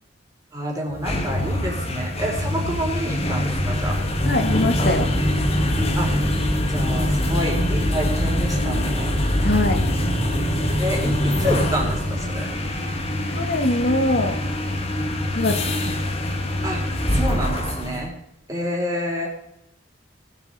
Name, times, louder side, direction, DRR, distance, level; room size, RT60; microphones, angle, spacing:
voice 1, 0.5-4.0 6.0-6.1 6.7-9.1 10.8-12.5 16.6-16.8 17.1-18.1 18.5-19.3, equal, 15° right, -1 dB, 3.9 m, -28 dB
sound 1, 0.9-18.0, left 1 dB, 30° left, 1.4 m, -23 dB
voice 2, 4.2-5.1 9.4-9.8 13.3-14.4 15.3-16.0, left 2 dB, 55° left, 5 dB, 1.4 m, -22 dB
19.5 x 7.2 x 5.3 m, 0.79 s
head